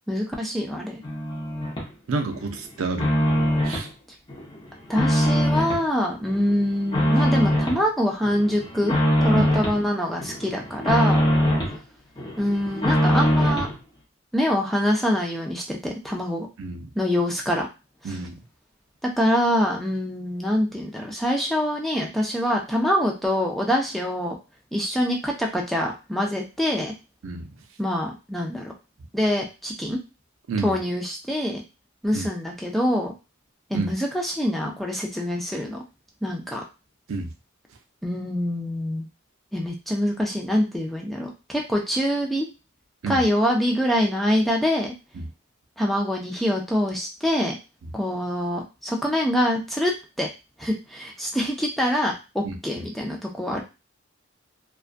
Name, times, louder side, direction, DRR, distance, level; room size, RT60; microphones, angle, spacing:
voice 1, 0.1-1.0 4.9-9.0 9.2-11.2 12.4-13.7 14.3-16.5 16.9-17.7 18.0-18.2 19.0-24.3 24.7-26.9 27.8-28.7 29.1-30.0 30.6-31.6 32.0-33.1 33.7-35.8 36.2-36.6 38.0-39.1 39.5-42.5 43.1-44.9 45.8-47.6 47.9-49.9 50.2-50.3 50.6-53.6, equal, ahead, 0 dB, 0.4 m, -25 dB
sound 1, 1.0-1.9 2.3-3.9 4.3-5.9 6.3-7.8 8.2-9.8 10.2-11.8 12.2-13.8, equal, 25° left, 0.7 m, -23 dB
voice 2, 2.1-3.1 3.6-3.9 9.3-9.5 11.4-11.6 16.6-16.9 18.0-18.4 27.2-27.5 30.5-30.7 32.1-32.3 33.7-33.9 37.1-37.3 43.0-43.2 45.2-45.3 52.4-52.6, right 3 dB, 65° right, 4 dB, 0.4 m, -29 dB
2.4 x 2.2 x 2.4 m, 0.28 s
head